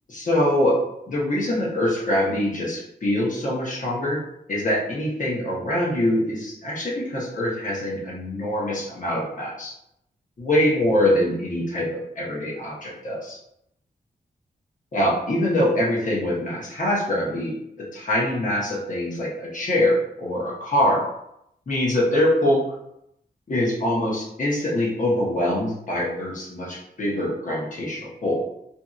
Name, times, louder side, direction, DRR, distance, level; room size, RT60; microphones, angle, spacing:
voice 1, 0.1-0.8 1.1-4.2 4.5-9.7 10.4-13.4 14.9-17.5 17.9-21.0 21.7-22.6 23.5-28.4, left 1 dB, 50° left, -4 dB, 0.9 m, -24 dB
2.7 x 2.6 x 2.3 m, 0.78 s
cardioid pair, 75°, 17 cm